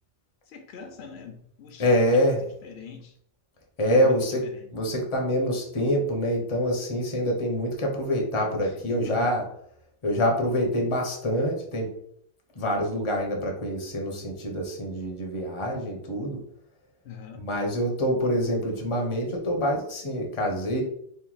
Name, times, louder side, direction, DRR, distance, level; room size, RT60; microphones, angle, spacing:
voice 1, 0.5-3.2 3.9-4.7 8.6-9.3 17.0-17.5, left 6 dB, 85° left, 5 dB, 0.9 m, -43 dB
voice 2, 1.8-2.4 3.8-4.4 4.7-9.4 10.0-11.9 12.5-16.4 17.3-20.8, equal, 35° left, 1 dB, 0.8 m, -25 dB
3.0 x 2.6 x 3.9 m, 0.68 s
omnidirectional pair, 1.0 m